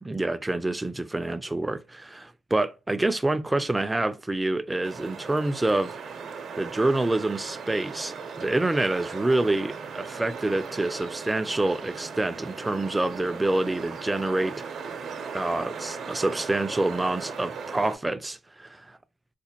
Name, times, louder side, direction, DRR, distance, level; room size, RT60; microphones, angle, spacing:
voice 1, 0.0-6.0 6.6-14.6 15.3-19.0, right 2 dB, 15° right, 0.3 m, -27 dB
sound 1, 4.8-18.0, right 5 dB, 65° right, 0.7 m, -38 dB
4.1 x 2.2 x 2.8 m
cardioid pair, 90°, 0 cm